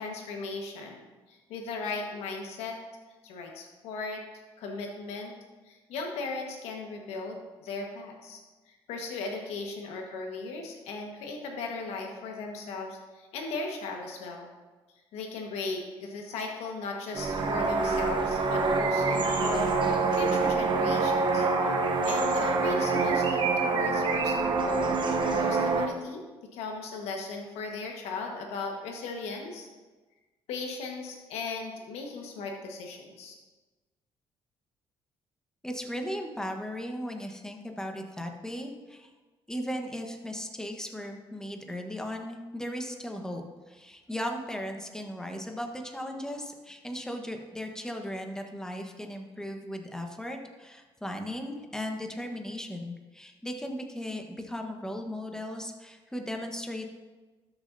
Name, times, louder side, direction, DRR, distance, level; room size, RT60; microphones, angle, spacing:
voice 1, 0.0-2.8 3.2-5.4 5.7-8.4 8.7-14.5 15.1-19.7 20.1-21.7 22.0-26.2 26.5-29.7 30.5-33.4, left 3 dB, 85° left, 1 dB, 1.4 m, -37 dB
sound 1, 17.1-25.9, right 4 dB, 50° right, 0.9 m, -26 dB
voice 2, 35.6-39.1 39.5-56.9, equal, 5° left, 3 dB, 1.2 m, -37 dB
13.0 x 6.7 x 2.7 m, 1.3 s
cardioid pair, 80°, 10 cm